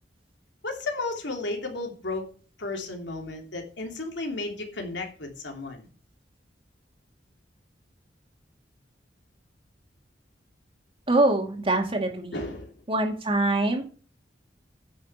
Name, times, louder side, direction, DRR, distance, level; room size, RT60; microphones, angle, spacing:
voice 1, 0.6-2.3 2.6-5.9 12.3-12.7, left 2 dB, 80° left, 2 dB, 3.0 m, -33 dB
voice 2, 11.1-12.4 12.9-13.8, right 2 dB, 30° right, 3 dB, 2.2 m, -24 dB
10.0 x 6.4 x 6.8 m, 0.39 s
head